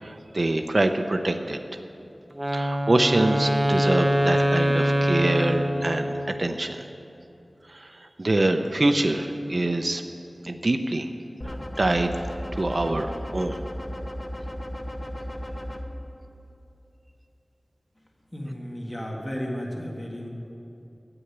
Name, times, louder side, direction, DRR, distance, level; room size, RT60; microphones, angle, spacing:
voice 1, 0.0-1.6 2.5-6.1 6.4-6.8 7.7-10.0 10.4-11.1 11.4-12.2 12.5-13.6, right 2 dB, 50° right, 6 dB, 0.6 m, -25 dB
Wind instrument woodwind instrument, 2.3-6.5, equal, 15° right, 0.7 m, -24 dB
sound 1, 11.4-15.8, equal, 40° left, 1.0 m, -34 dB
voice 2, 18.3-20.3, equal, 20° left, -1 dB, 1.7 m, -33 dB
9.8 x 8.0 x 8.6 m, 2.8 s
wide cardioid pair, 60°, 0 cm